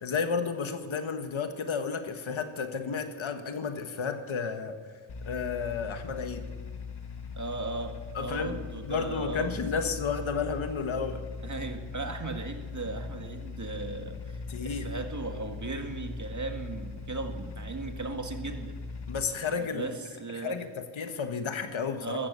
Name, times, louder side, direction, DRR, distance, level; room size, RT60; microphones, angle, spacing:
voice 1, 0.0-4.8 5.2-6.4 8.1-11.2 14.5-15.0 19.1-19.9 20.4-22.2, left 5 dB, 80° left, 7 dB, 1.5 m, -32 dB
sound 1, 5.1-19.2, left 4 dB, 55° left, 1.8 m, -40 dB
voice 2, 7.3-9.8 11.4-18.8 19.6-20.6 22.0-22.3, right 3 dB, 40° right, 5 dB, 1.9 m, -37 dB
15.0 x 14.0 x 6.9 m, 1.5 s
cardioid pair, 65°, 47 cm